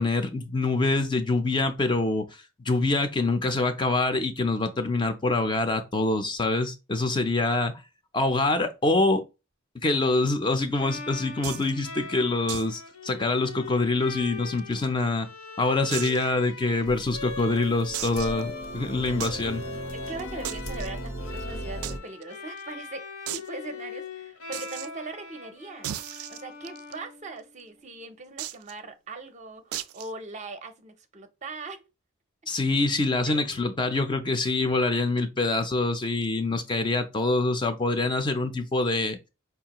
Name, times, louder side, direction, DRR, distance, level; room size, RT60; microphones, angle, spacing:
voice 1, 0.0-7.8 8.1-9.2 9.8-15.3 15.6-19.6 32.5-39.2, left 2 dB, 20° left, 0.4 m, -25 dB
Bowed string instrument, 10.7-27.6, left 4 dB, 70° left, 0.8 m, -41 dB
sound 1, 11.4-11.7 12.5-12.8 13.0-13.1 13.5-13.6 14.3-15.0 15.9-16.3 16.8-16.9 17.9-18.4 19.2-19.4 20.4-20.9 21.8-21.9 22.2-22.3 22.6-22.7 23.3-23.5 24.5-24.9 25.8-26.9 28.4-28.7 29.7-30.1, right 12 dB, 90° right, 0.3 m, -35 dB
sound 2, 16.9-22.0, right 1 dB, 90° left, 1.1 m, -37 dB
voice 2, 19.9-23.0 23.3-25.9 26.3-31.8 33.3-33.6, right 3 dB, 35° right, 0.5 m, -40 dB
5.1 x 2.3 x 2.9 m
head